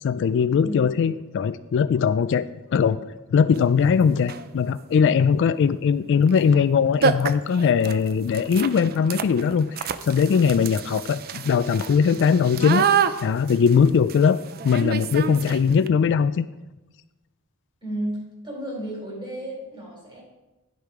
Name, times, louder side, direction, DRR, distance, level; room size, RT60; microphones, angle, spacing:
voice 1, 0.0-2.5 2.7-3.0 3.3-12.9 13.2-16.5, left 6 dB, 60° left, 14 dB, 0.3 m, -20 dB
sound 1, 3.5-3.6 4.2-4.6 6.3-6.4 6.7-6.8 7.0-15.9, right 7 dB, 45° right, 0.4 m, -28 dB
voice 2, 17.8-20.2, right 1 dB, 25° right, -3 dB, 3.7 m, -33 dB
10.0 x 6.5 x 4.8 m, 1.1 s
head